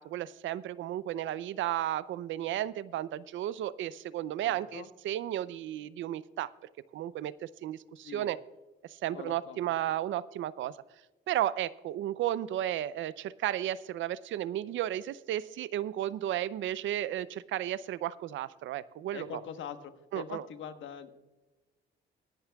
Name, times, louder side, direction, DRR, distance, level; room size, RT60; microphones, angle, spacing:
voice 1, 0.0-6.5 6.9-8.4 8.8-10.7 11.3-19.4 20.1-20.4, right 12 dB, 75° right, 18 dB, 0.5 m, -33 dB
voice 2, 4.4-4.9 8.0-8.3 9.1-9.6 19.1-21.1, left 8 dB, 75° left, 9 dB, 1.2 m, -43 dB
22.0 x 11.0 x 2.3 m, 1.2 s
cardioid pair, 90°, 20 cm